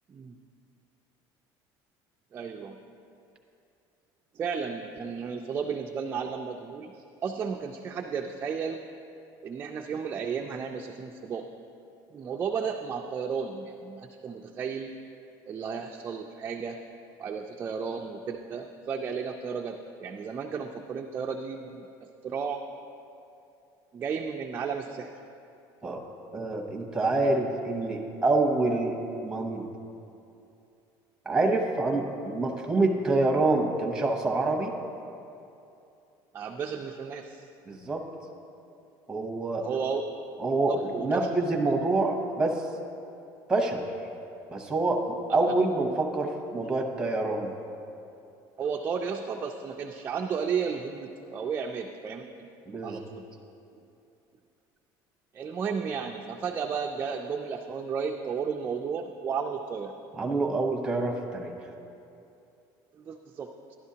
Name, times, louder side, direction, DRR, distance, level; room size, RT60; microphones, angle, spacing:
voice 1, 2.3-2.8 4.3-8.8 9.4-11.5 12.1-14.9 15.5-16.8 17.2-21.9 22.2-22.6 23.9-25.1 27.2-27.3 36.3-37.4 39.6-40.0 40.7-41.3 48.6-52.5 52.8-53.2 55.3-59.9 62.9-63.5, right 6 dB, 25° right, 2 dB, 0.3 m, -33 dB
voice 2, 26.3-29.7 31.3-34.7 37.7-38.0 39.1-39.7 40.4-42.7 43.5-43.9 44.5-47.5 52.7-53.0 60.1-61.5, right 2 dB, 10° right, 1 dB, 0.8 m, -26 dB
11.5 x 11.5 x 2.8 m, 2.7 s
cardioid pair, 165°, 9 cm